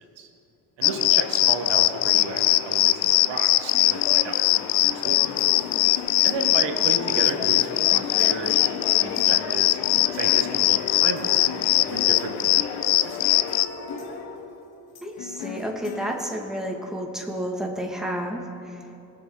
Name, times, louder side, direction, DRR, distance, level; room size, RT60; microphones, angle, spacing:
sound 1, 0.8-13.7, left 17 dB, 80° left, 0.5 m, -21 dB
voice 1, 0.8-5.4 6.2-9.8 10.1-11.6 11.9-13.2, right 4 dB, 65° right, 4 dB, 1.9 m, -33 dB
sound 2, 3.7-16.9, left 5 dB, 50° left, 1.5 m, -40 dB
sound 3, 4.8-14.3, left 3 dB, 25° left, 2.1 m, -40 dB
voice 2, 15.0-18.4, equal, ahead, 0 dB, 2.5 m, -30 dB
21.0 x 7.5 x 4.2 m, 2.7 s
hypercardioid pair, 55°, 46 cm